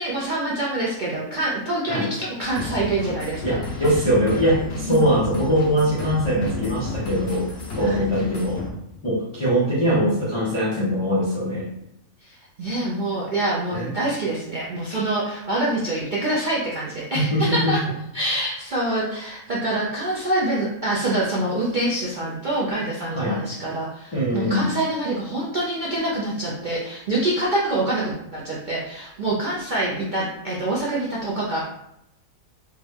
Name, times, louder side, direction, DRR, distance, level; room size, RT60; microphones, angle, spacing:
voice 1, 0.0-3.6 4.9-5.1 7.8-8.0 12.2-17.8 18.1-31.6, right 1 dB, 60° right, -6 dB, 0.5 m, -26 dB
sound 1, 2.4-8.7, left 3 dB, 80° left, 1.2 m, -32 dB
voice 2, 3.4-7.5 7.8-8.6 9.0-11.7 13.7-13.9 17.1-17.7 23.1-23.4 24.1-24.7, equal, 50° left, -6 dB, 0.3 m, -22 dB
3.4 x 2.1 x 3.2 m, 0.80 s
omnidirectional pair, 1.5 m